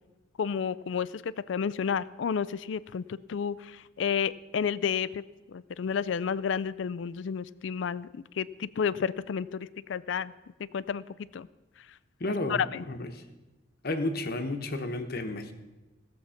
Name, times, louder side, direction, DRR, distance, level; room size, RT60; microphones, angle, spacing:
voice 1, 0.4-10.3 10.6-11.5 12.5-12.8, left 7 dB, 65° left, 19 dB, 0.4 m, -31 dB
voice 2, 12.2-13.2 13.8-15.5, left 2 dB, 50° left, 7 dB, 1.0 m, -32 dB
17.0 x 7.3 x 5.7 m, 1.1 s
head